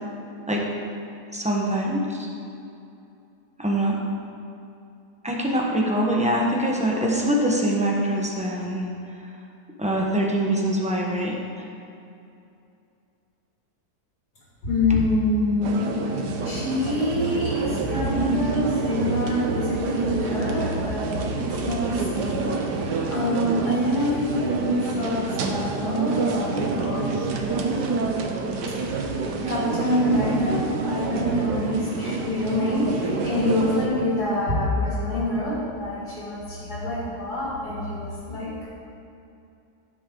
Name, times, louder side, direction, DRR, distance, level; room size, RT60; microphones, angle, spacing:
voice 1, 1.3-2.3 3.6-4.0 5.2-8.9 9.8-11.3, right 1 dB, 5° right, -2 dB, 1.0 m, -23 dB
voice 2, 14.6-15.9 16.4-27.3 29.5-38.5, left 1 dB, 65° left, -7 dB, 3.0 m, -26 dB
sound 1, 15.6-33.9, right 3 dB, 75° right, 1.5 m, -28 dB
15.5 x 6.3 x 3.9 m, 2.6 s
omnidirectional pair, 1.8 m